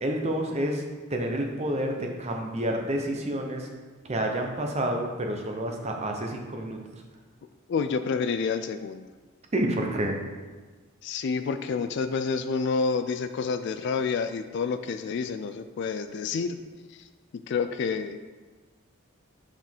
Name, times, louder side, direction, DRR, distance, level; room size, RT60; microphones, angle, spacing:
voice 1, 0.0-0.8 1.1-3.7 4.1-7.0 9.5-10.2, right 1 dB, 30° right, 2 dB, 0.8 m, -29 dB
voice 2, 7.7-9.1 11.0-16.6 17.5-18.3, left 5 dB, 55° left, 9 dB, 0.3 m, -28 dB
5.8 x 4.9 x 4.4 m, 1.3 s
head